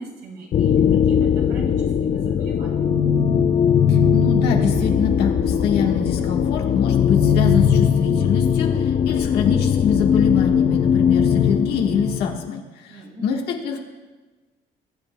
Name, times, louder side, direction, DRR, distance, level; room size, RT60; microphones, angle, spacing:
voice 1, 0.0-3.1 12.9-13.3, right 2 dB, 80° right, -3 dB, 2.9 m, -38 dB
sound 1, 0.5-12.5, left 8 dB, 45° left, 0.5 m, -19 dB
voice 2, 3.9-13.8, left 6 dB, 75° left, 1 dB, 1.3 m, -25 dB
sound 2, 4.8-8.9, right 6 dB, 40° right, 0.7 m, -37 dB
21.0 x 7.8 x 2.2 m, 1.3 s
cardioid pair, 110°, 17 cm